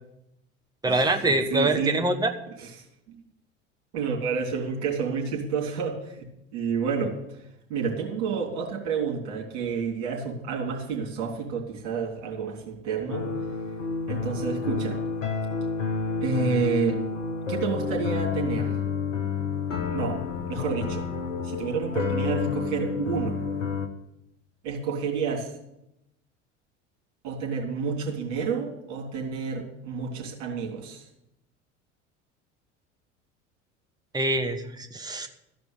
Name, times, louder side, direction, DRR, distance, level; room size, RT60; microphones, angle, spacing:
voice 1, 0.8-2.3 34.1-35.3, right 2 dB, 10° right, 5 dB, 1.2 m, -24 dB
voice 2, 1.5-2.0 2.6-2.7 3.9-7.2 7.7-13.3 14.1-15.0 16.2-17.0 17.5-18.8 19.8-20.2 20.5-21.0 21.4-23.4 24.6-25.5 27.2-31.1, right 5 dB, 55° right, -2 dB, 3.5 m, -29 dB
sound 1, 13.1-23.9, left 5 dB, 75° left, 1.2 m, -30 dB
14.0 x 5.2 x 9.4 m, 0.85 s
figure-of-eight pair, 70°, 38 cm